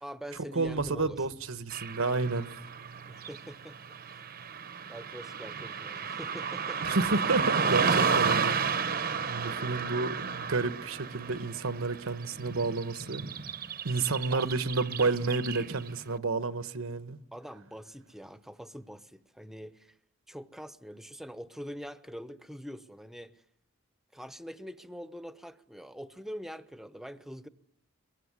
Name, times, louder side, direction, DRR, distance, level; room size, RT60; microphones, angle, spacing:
voice 1, 0.0-1.2 3.1-3.8 4.1-4.2 4.9-6.8 14.3-14.5 17.3-20.0 20.3-23.4 24.1-27.5, equal, ahead, 1.0 m, -44 dB
voice 2, 0.5-2.6 6.8-8.8 9.3-13.2 13.8-17.2, right 3 dB, 75° right, 1.1 m, -30 dB
sound 1, 0.6-2.6, equal, 60° left, 4.0 m, -53 dB
Car passing by / Traffic noise roadway noise, 1.7-16.0, right 5 dB, 45° right, 0.9 m, -32 dB
23.0 x 23.0 x 9.7 m
head